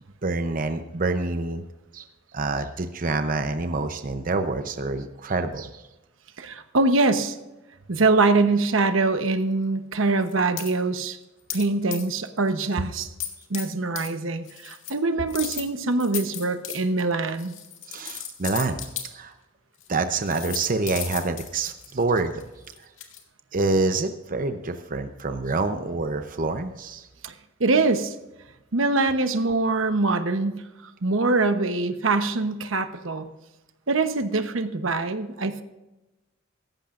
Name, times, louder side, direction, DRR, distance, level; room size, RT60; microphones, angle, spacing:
voice 1, 0.2-1.6 1.9-2.1 2.3-5.8 17.9-18.8 19.1-19.3 19.9-22.4 23.5-27.1, right 3 dB, 45° right, 8 dB, 0.7 m, -27 dB
voice 2, 6.4-7.4 7.9-11.2 11.5-13.1 13.5-17.5 27.2-27.3 27.6-28.1 28.7-33.3 33.9-35.6, right 3 dB, 75° right, 9 dB, 1.0 m, -23 dB
sound 1, 10.2-10.7 11.5-11.7 11.9-12.3 12.6-12.8 13.2-13.7 14.0-14.1 14.5-14.9 15.3-19.0 19.8-19.9 20.2-23.2, left 10 dB, 70° left, 2.0 m, -35 dB
16.0 x 14.5 x 2.5 m, 1.0 s
head